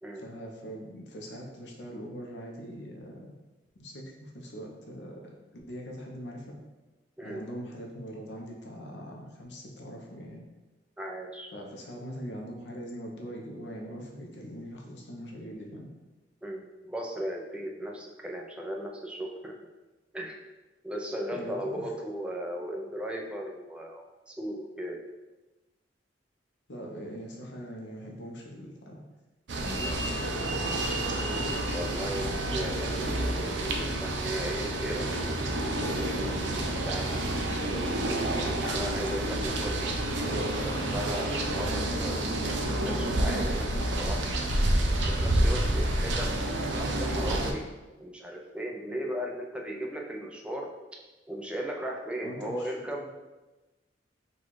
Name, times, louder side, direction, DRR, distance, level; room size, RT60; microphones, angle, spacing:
voice 1, 0.2-3.3 3.8-5.3 5.7-6.5 7.2-10.4 11.5-15.9 21.3-21.9 26.7-29.0 29.6-31.0 52.2-53.1, equal, 70° left, 0 dB, 0.8 m, -42 dB
voice 2, 11.0-11.5 16.4-19.6 20.1-20.4 20.8-25.0 31.7-37.2 37.5-39.9 40.5-42.5 42.8-44.3 45.0-46.3 46.8-47.7 48.0-50.7 51.3-53.1, equal, 5° right, 0 dB, 0.4 m, -37 dB
sound 1, 29.5-47.5, right 1 dB, 75° right, 0.5 m, -29 dB
4.2 x 2.4 x 4.6 m, 1.1 s
head